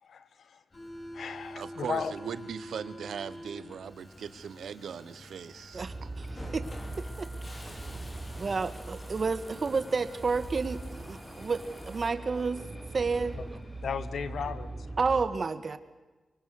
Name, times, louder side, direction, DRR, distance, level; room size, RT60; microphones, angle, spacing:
voice 1, 0.0-0.6 1.1-2.1 13.8-14.9, left 6 dB, 80° left, 13 dB, 1.4 m, -35 dB
Subway metro underground, 0.7-15.1, equal, 35° left, 5.3 m, -48 dB
voice 2, 1.6-6.1, right 7 dB, 85° right, 14 dB, 1.2 m, -39 dB
sound 1, 5.5-15.2, right 2 dB, 25° right, 4.3 m, -41 dB
voice 3, 5.7-6.3 6.5-6.7 7.0-7.7 8.4-12.6 12.9-13.4 15.0-15.8, right 4 dB, 50° right, 11 dB, 1.8 m, -31 dB
sound 2, 6.6-12.1, equal, 15° left, 3.9 m, -50 dB
24.0 x 24.0 x 6.6 m, 1.2 s
cardioid pair, 65°, 0 cm